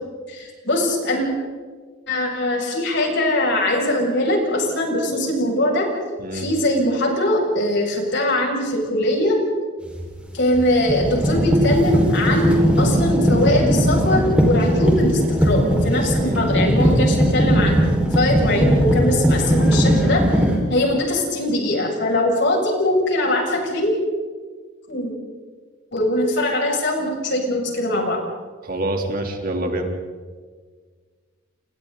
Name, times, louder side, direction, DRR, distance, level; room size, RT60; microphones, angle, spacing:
voice 1, 0.3-1.3 2.1-5.9 6.3-9.4 10.3-17.8 18.1-20.2 20.7-24.0 24.9-25.1 25.9-28.2, left 1 dB, 65° left, 0 dB, 7.3 m, -21 dB
sound 1, 9.9-10.1 10.6-20.6, equal, 5° right, 5.4 m, -19 dB
voice 2, 16.2-16.5 28.6-29.9, right 1 dB, 50° right, 2 dB, 3.5 m, -26 dB
29.5 x 29.0 x 4.1 m, 1.5 s
head